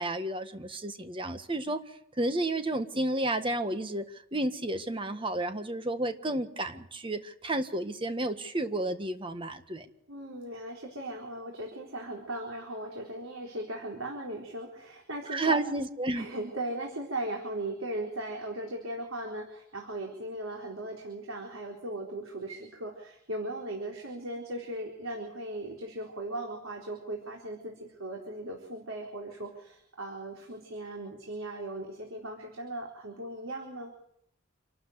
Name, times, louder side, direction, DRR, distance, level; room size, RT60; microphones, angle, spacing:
voice 1, 0.0-1.8 2.2-4.0 4.3-9.9 15.3-16.3, right 2 dB, 25° right, 9 dB, 1.6 m, -31 dB
voice 2, 10.1-15.6 16.1-33.9, right 1 dB, 80° right, 0 dB, 4.2 m, -38 dB
27.5 x 12.5 x 8.2 m, 0.74 s
head